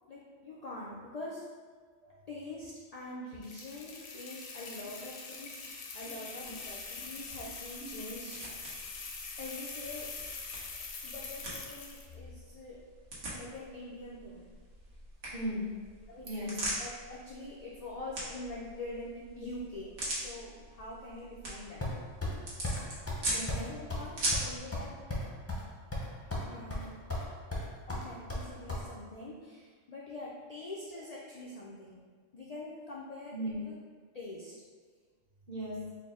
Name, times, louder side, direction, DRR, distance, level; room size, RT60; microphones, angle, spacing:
voice 1, 0.1-1.5 2.3-5.6 5.9-8.8 9.4-10.1 11.0-12.8 13.3-14.5 16.1-16.5 16.8-21.8 23.6-24.9 26.5-27.0 27.9-32.0 32.3-33.3 33.6-33.7 34.1-34.5, left 2 dB, 85° left, -5 dB, 0.3 m, -44 dB
sound 1, 3.4-12.1, left 4 dB, 65° left, 0.7 m, -44 dB
sound 2, 6.4-24.6, right 1 dB, 85° right, 1.4 m, -42 dB
voice 2, 15.3-15.9 16.2-16.7 23.3-23.8 33.3-33.6 35.5-35.9, equal, 50° right, -4 dB, 1.0 m, -38 dB
sound 3, 21.8-22.4 22.6-22.8 23.1-23.2 23.5-23.6 23.9-24.0 24.3-25.6 25.9-26.4 26.7-27.2 27.5-28.8, left 1 dB, 20° left, 0.4 m, -34 dB
4.3 x 2.0 x 3.6 m, 1.5 s
omnidirectional pair, 1.3 m